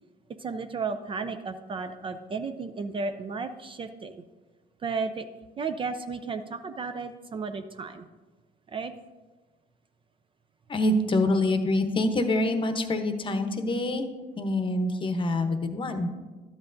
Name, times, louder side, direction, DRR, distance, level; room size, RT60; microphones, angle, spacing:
voice 1, 0.4-4.2 4.8-5.3 5.6-8.1 8.7-8.9, right 4 dB, 30° right, 9 dB, 0.4 m, -33 dB
voice 2, 10.7-14.1 14.4-16.1, left 1 dB, 30° left, 7 dB, 0.8 m, -26 dB
12.0 x 8.0 x 2.6 m, 1.3 s
cardioid pair, 110°, 17 cm